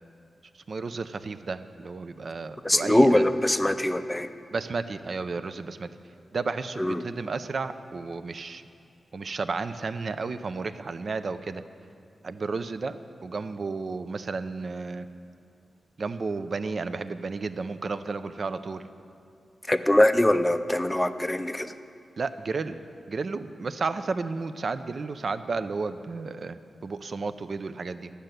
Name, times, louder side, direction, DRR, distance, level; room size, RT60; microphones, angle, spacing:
voice 1, 0.5-3.2 4.5-5.9 6.3-8.6 9.1-11.6 12.2-15.1 16.0-18.8 22.2-22.8 23.1-28.1, right 4 dB, 50° right, 11 dB, 0.5 m, -32 dB
voice 2, 2.6-4.3 6.8-7.0 19.7-21.7, left 1 dB, 10° left, 10 dB, 0.5 m, -22 dB
11.5 x 6.7 x 9.0 m, 2.5 s
wide cardioid pair, 130°, 0 cm